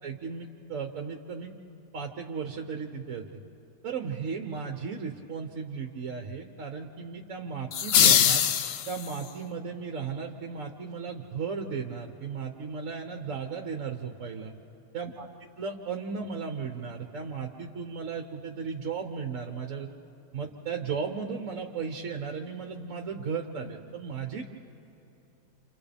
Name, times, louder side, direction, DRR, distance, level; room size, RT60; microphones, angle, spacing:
voice 1, 0.0-1.5 1.9-3.4 3.8-8.4 8.9-14.5 14.9-19.9 20.3-24.4, right 5 dB, 55° right, 3 dB, 1.3 m, -35 dB
sound 1, 7.7-9.3, left 8 dB, 80° left, 0.5 m, -22 dB
29.0 x 28.0 x 3.5 m, 2.9 s
omnidirectional pair, 1.8 m